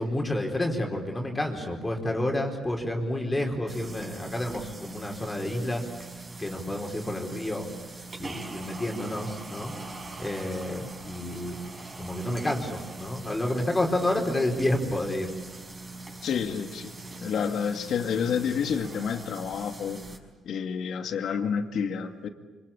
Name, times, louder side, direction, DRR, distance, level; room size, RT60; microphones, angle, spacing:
voice 1, 0.0-5.9 6.4-7.6 8.2-9.7 10.2-11.6 12.0-15.3, left 1 dB, 15° left, 1 dB, 4.6 m, -29 dB
sound 1, 3.7-20.2, right 3 dB, 35° right, 5.5 m, -42 dB
voice 2, 16.2-16.9 17.2-20.0 20.4-22.3, left 7 dB, 70° left, 6 dB, 2.4 m, -29 dB
25.5 x 25.5 x 8.7 m, 1.2 s
cardioid pair, 90°, 0 cm